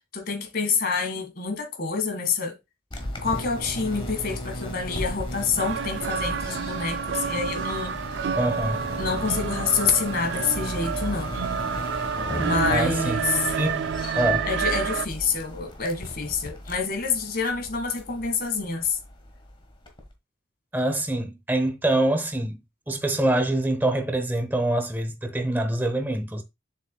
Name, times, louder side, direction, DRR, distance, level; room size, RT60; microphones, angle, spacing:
voice 1, 0.1-2.5 3.2-8.4 9.0-11.3 12.4-13.5 14.4-19.0, left 5 dB, 50° left, 1.8 m, -27 dB
sound 1, 2.9-20.1, left 1 dB, 25° left, 1.4 m, -36 dB
sound 2, 5.6-15.1, right 7 dB, 60° right, 0.3 m, -29 dB
voice 2, 8.3-8.8 12.7-13.8 14.1-14.5 20.7-22.6 22.9-26.4, right 1 dB, 10° right, 0.7 m, -25 dB
7.2 x 6.3 x 2.3 m
head